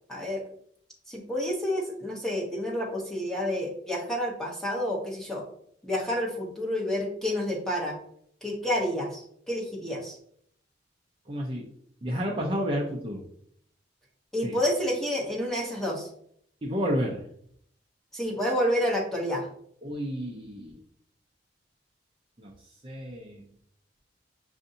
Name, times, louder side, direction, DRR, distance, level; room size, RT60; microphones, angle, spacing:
voice 1, 0.1-0.4 1.1-5.4 5.8-8.0 8.4-10.2 14.3-16.1 18.1-19.5, left 1 dB, 5° left, -3 dB, 0.9 m, -29 dB
voice 2, 11.3-11.7 12.0-13.2 14.4-14.6 16.6-17.2 19.8-20.8 22.4-22.5 22.8-23.4, equal, 25° right, -3 dB, 0.5 m, -30 dB
6.5 x 2.6 x 2.6 m, 0.66 s
head